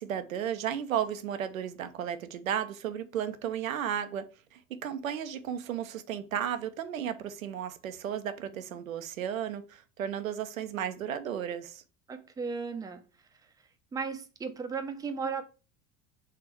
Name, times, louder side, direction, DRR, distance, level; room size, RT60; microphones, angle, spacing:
voice 1, 0.0-11.8, right 9 dB, 85° right, 0.6 m, -34 dB
voice 2, 12.1-13.0 13.9-15.4, right 5 dB, 10° right, 0.5 m, -35 dB
3.5 x 3.3 x 4.5 m
figure-of-eight pair, 75°, 39 cm